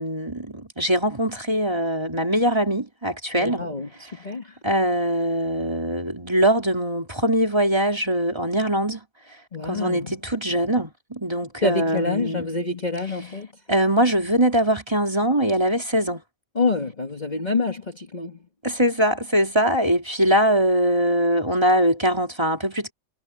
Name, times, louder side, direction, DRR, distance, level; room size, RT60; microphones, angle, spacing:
voice 1, 0.0-3.7 4.6-9.0 9.6-12.5 13.7-16.2 18.6-22.9, right 1 dB, 20° right, 3.4 m, -22 dB
voice 2, 3.4-4.5 9.5-10.2 11.6-13.5 16.6-18.4, left 3 dB, 30° left, 1.8 m, -27 dB
omnidirectional pair, 1.5 m